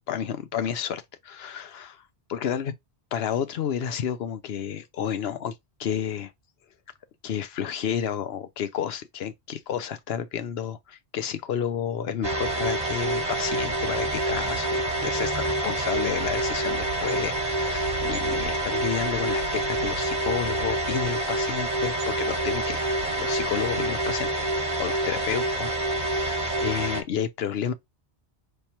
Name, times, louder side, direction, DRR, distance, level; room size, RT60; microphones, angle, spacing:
voice 1, 0.1-2.0 2.3-2.7 3.1-5.5 5.8-6.3 7.2-27.7, left 8 dB, 70° left, 0.9 m, -31 dB
sound 1, 12.2-27.0, right 2 dB, 35° right, 1.2 m, -27 dB
5.4 x 3.3 x 2.9 m
omnidirectional pair, 1.1 m